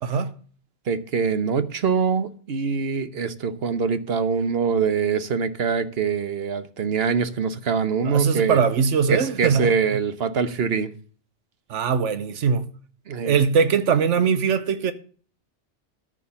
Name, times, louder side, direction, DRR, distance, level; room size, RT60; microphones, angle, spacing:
voice 1, 0.0-0.3 8.0-9.7 11.7-12.7 13.2-14.9, right 6 dB, 90° right, 1.2 m, -21 dB
voice 2, 0.9-8.6 9.1-10.9 13.1-13.4, right 6 dB, 60° right, 1.1 m, -24 dB
14.0 x 4.9 x 7.0 m
omnidirectional pair, 1.2 m